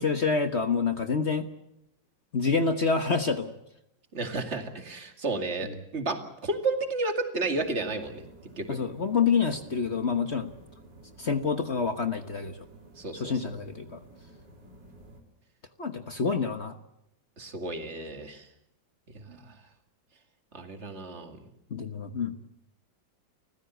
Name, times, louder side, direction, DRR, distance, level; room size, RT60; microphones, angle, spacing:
voice 1, 0.0-1.5 2.3-3.5 8.7-10.5 11.2-12.6 13.2-14.0 15.8-16.7 21.7-22.3, left 5 dB, 40° left, 8 dB, 1.4 m, -27 dB
voice 2, 4.1-8.2 8.6-8.8 13.0-13.4 17.4-18.5 19.1-19.5 20.5-21.4, right 3 dB, 40° right, 6 dB, 2.5 m, -32 dB
sound 1, 7.4-15.2, right 1 dB, 75° right, 3.9 m, -52 dB
30.0 x 15.5 x 8.1 m, 0.82 s
omnidirectional pair, 2.0 m